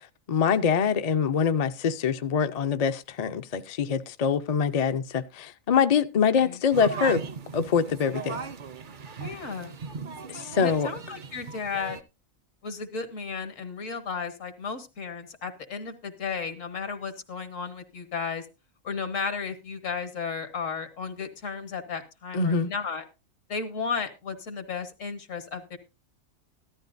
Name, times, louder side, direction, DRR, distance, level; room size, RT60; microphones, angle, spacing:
voice 1, 0.3-7.2 7.5-8.4 10.3-10.9 22.3-22.7, left 6 dB, 45° left, 0.5 m, -24 dB
sound 1, 6.7-12.0, right 5 dB, 50° right, 0.7 m, -37 dB
voice 2, 9.2-9.8 10.6-12.0 12.6-18.5 18.8-23.0 23.5-25.8, left 5 dB, 75° left, 1.7 m, -34 dB
14.5 x 12.5 x 2.6 m
omnidirectional pair, 1.4 m